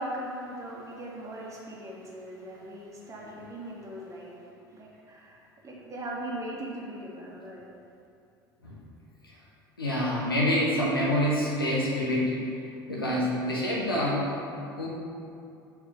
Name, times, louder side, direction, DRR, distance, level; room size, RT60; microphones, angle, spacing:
voice 1, 0.0-7.7, right 1 dB, 25° right, -3 dB, 1.4 m, -39 dB
voice 2, 9.8-12.3 12.9-14.4 14.8-14.9, left 1 dB, 80° left, -5 dB, 1.2 m, -26 dB
4.6 x 4.3 x 5.4 m, 2.6 s
figure-of-eight pair, 70°, 12 cm